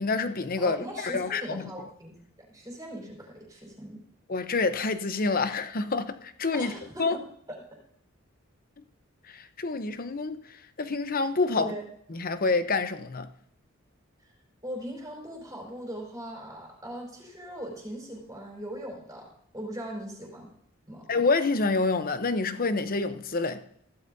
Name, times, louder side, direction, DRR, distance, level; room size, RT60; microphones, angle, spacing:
voice 1, 0.0-1.7 4.3-6.7 7.0-7.2 9.3-11.7 12.1-13.3 21.1-23.6, left 3 dB, 45° left, 0.8 m, -27 dB
voice 2, 0.6-2.2 2.5-4.0 6.5-7.2 7.5-7.6 11.5-11.8 14.2-14.3 14.6-19.3 19.5-20.5 20.9-21.0, equal, 15° right, 4.7 m, -39 dB
16.0 x 13.0 x 2.7 m
head